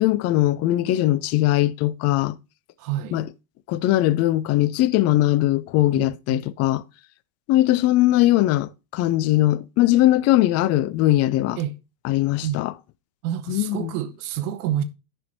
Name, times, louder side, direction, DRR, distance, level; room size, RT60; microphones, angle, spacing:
voice 1, 0.0-2.4 3.1-3.2 3.7-6.8 7.5-11.6 12.0-12.7 13.5-13.9, left 15 dB, 35° left, 0.4 m, -20 dB
voice 2, 2.8-3.2 5.9-6.4 11.6-11.8 12.4-12.6 13.2-14.8, right 11 dB, 65° right, 0.8 m, -28 dB
9.9 x 5.4 x 2.6 m
hypercardioid pair, 95°, 49 cm